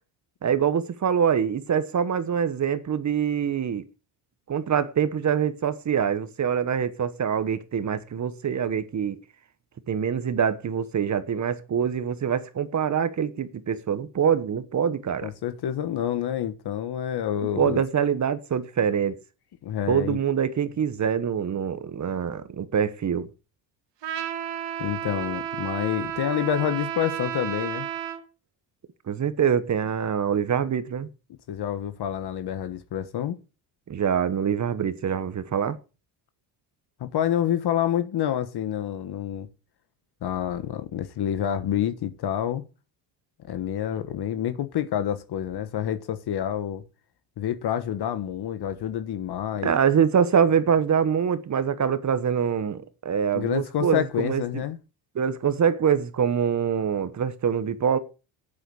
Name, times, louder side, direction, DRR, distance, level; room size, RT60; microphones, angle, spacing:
voice 1, 0.4-3.8 4.5-9.2 9.9-15.3 17.6-19.2 19.9-23.3 29.1-31.1 33.9-35.8 49.6-54.4 55.1-58.0, right 7 dB, 40° right, 1.2 m, -24 dB
voice 2, 15.2-17.8 19.6-20.2 24.8-27.9 31.5-33.4 37.0-39.5 40.2-42.6 43.5-46.8 47.4-49.7 53.3-54.8, left 10 dB, 55° left, 1.4 m, -28 dB
Trumpet, 24.0-28.2, right 10 dB, 65° right, 2.4 m, -32 dB
9.0 x 8.2 x 8.4 m
cardioid pair, 105°, 46 cm